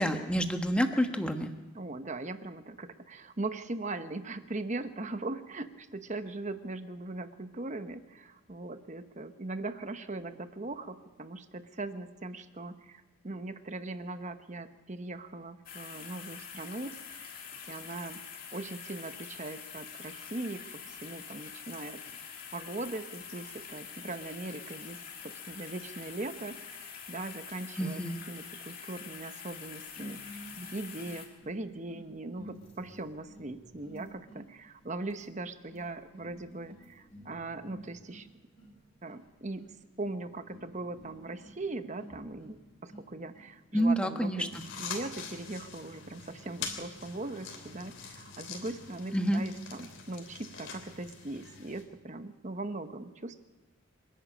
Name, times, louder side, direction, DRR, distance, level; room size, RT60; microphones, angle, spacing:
voice 1, 0.0-1.5 27.8-28.2 43.7-44.5 49.1-49.4, equal, 5° left, 5 dB, 1.3 m, -28 dB
voice 2, 1.7-17.3 17.7-18.2 18.5-22.0 22.5-38.3 39.0-39.7 40.0-53.4, right 2 dB, 35° right, 10 dB, 1.0 m, -40 dB
sound 1, 15.7-31.3, left 7 dB, 45° left, 2.8 m, -45 dB
sound 2, 29.9-45.4, equal, 30° left, 5.3 m, -53 dB
sound 3, 44.5-51.8, left 5 dB, 65° left, 3.3 m, -44 dB
26.5 x 11.5 x 8.6 m, 1.1 s
head